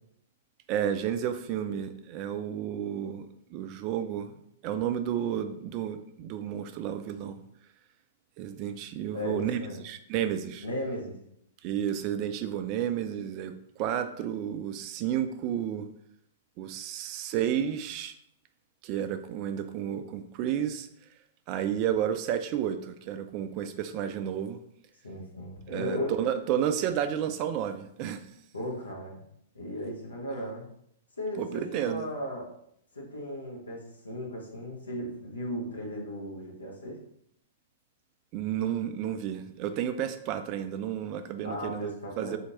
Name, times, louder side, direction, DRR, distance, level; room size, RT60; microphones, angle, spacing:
voice 1, 0.7-4.4 4.6-7.4 8.4-10.6 11.6-15.9 16.6-18.2 18.8-20.9 21.5-24.6 25.7-28.3 31.4-32.0 38.3-42.4, right 9 dB, 35° right, 9 dB, 0.3 m, -31 dB
voice 2, 9.1-9.8 10.6-11.2 25.0-26.1 28.5-29.2 29.5-30.7 31.2-32.5 32.9-37.0 41.4-42.4, equal, 80° left, -2 dB, 1.1 m, -36 dB
4.2 x 2.8 x 2.9 m, 0.73 s
figure-of-eight pair, 105°, 0 cm